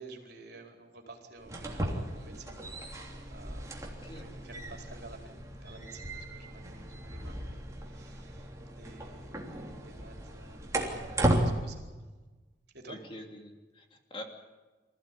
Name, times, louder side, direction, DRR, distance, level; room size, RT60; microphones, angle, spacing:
voice 1, 0.0-11.8 12.7-13.0, right 3 dB, 60° right, 2 dB, 4.4 m, -52 dB
sound 1, 1.4-11.5, right 1 dB, 15° right, 3.2 m, -35 dB
voice 2, 11.3-11.7 12.9-14.2, left 1 dB, 30° left, 3 dB, 2.8 m, -46 dB
26.0 x 15.5 x 9.9 m, 1.2 s
head